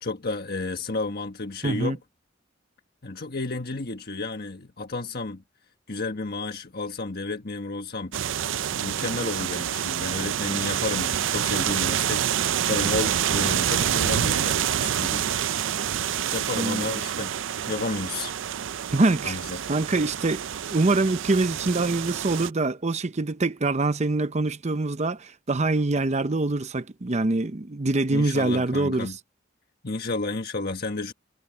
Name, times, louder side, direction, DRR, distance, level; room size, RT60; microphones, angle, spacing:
voice 1, 0.0-2.0 3.0-5.4 5.9-8.1 8.7-12.3 12.6-15.3 16.3-17.3 17.7-18.3 19.2-19.6 28.1-29.2 29.8-31.1, left 3 dB, 55° left, 1.4 m, -31 dB
voice 2, 1.6-2.0 16.5-16.8 18.9-19.4 19.7-20.4 20.7-29.1, right 2 dB, 35° right, 0.7 m, -24 dB
sound 1, 8.1-22.5, right 9 dB, 75° right, 0.5 m, -27 dB
head